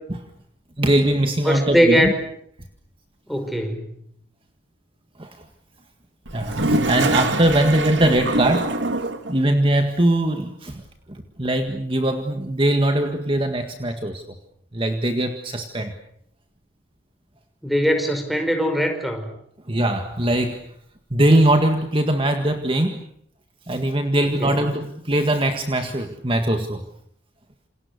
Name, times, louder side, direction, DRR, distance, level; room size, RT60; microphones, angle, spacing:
voice 1, 0.8-2.1 5.2-5.4 6.3-8.8 9.3-10.8 11.1-14.2 14.7-15.9 19.7-20.6 21.1-23.0 23.7-26.8, right 1 dB, 30° right, 6 dB, 1.8 m, -21 dB
voice 2, 1.4-2.2 3.3-4.0 17.6-19.3 24.2-24.6, equal, ahead, 6 dB, 5.2 m, -21 dB
Toilet flush, 6.3-9.3, right 2 dB, 75° right, 2.4 m, -24 dB
28.5 x 28.5 x 6.9 m, 0.69 s
head